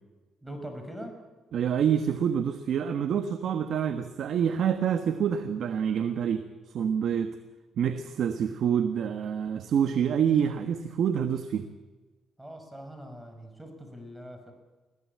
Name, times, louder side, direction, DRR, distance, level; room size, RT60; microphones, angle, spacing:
voice 1, 0.4-1.2 12.4-14.5, equal, 10° right, 5 dB, 5.8 m, -42 dB
voice 2, 1.5-6.4 6.7-7.3 7.8-11.7, right 8 dB, 65° right, 9 dB, 1.4 m, -27 dB
21.5 x 16.5 x 8.5 m, 1.3 s
cardioid pair, 90°, 0 cm